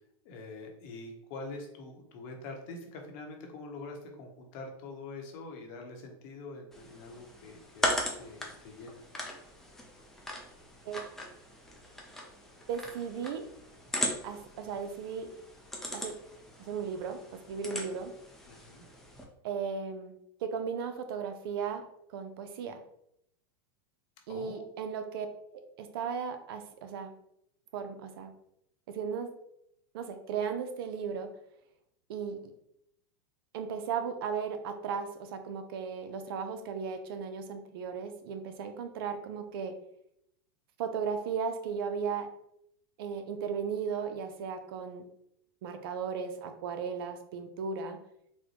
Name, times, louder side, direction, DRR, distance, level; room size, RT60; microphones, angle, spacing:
voice 1, 0.2-9.0 18.4-18.8 24.3-24.6, left 3 dB, 50° left, 2 dB, 0.9 m, -45 dB
sound 1, 6.7-19.2, left 1 dB, 5° left, 0.6 m, -39 dB
voice 2, 12.7-13.4 14.2-15.3 15.9-16.2 16.6-17.2 17.5-18.1 19.4-21.8 22.1-22.8 24.3-25.3 25.5-27.1 27.7-28.3 28.9-29.3 29.9-31.3 32.1-32.5 33.5-39.8 40.8-42.3 43.0-45.1 45.6-48.0, right 6 dB, 70° right, 7 dB, 0.5 m, -36 dB
4.2 x 2.2 x 2.9 m, 0.76 s
supercardioid pair, 130°, 13 cm